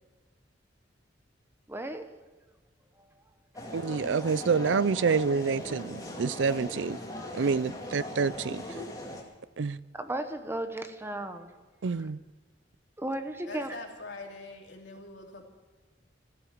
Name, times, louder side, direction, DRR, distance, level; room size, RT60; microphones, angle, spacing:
voice 1, 1.7-2.1 3.0-3.1 9.9-11.5 13.0-13.8, right 1 dB, 15° right, 1.0 m, -35 dB
sound 1, 3.5-9.2, left 1 dB, 20° left, 2.5 m, -39 dB
voice 2, 3.7-7.0 7.3-8.8 9.6-9.8 11.8-12.2, right 5 dB, 80° right, 0.5 m, -28 dB
voice 3, 13.5-15.4, left 2 dB, 75° left, 3.1 m, -43 dB
15.0 x 13.0 x 7.3 m
head